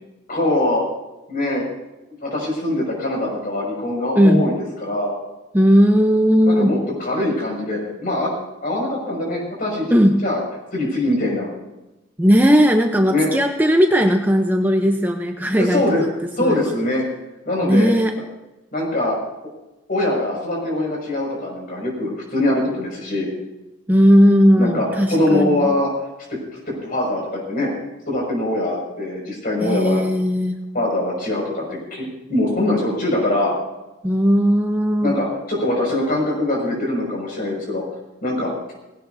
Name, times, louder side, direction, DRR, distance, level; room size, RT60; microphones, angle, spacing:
voice 1, 0.3-0.8 1.3-1.6 2.2-4.5 4.8-5.1 6.5-8.3 8.6-9.9 10.2-10.4 10.7-11.5 13.1-13.3 15.5-16.0 16.4-17.0 17.5-17.9 18.7-19.2 19.9-23.3 24.6-25.9 26.3-26.4 26.7-27.7 28.1-30.0 30.7-33.5 35.0-37.8 38.2-38.5, left 1 dB, 50° left, -2 dB, 6.1 m, -22 dB
voice 2, 5.5-6.8 9.9-10.2 12.2-15.8 16.4-16.7 17.6-18.1 23.9-25.7 29.6-30.6 34.0-35.2, equal, 10° right, 4 dB, 0.7 m, -16 dB
18.5 x 17.0 x 2.7 m, 1.0 s
head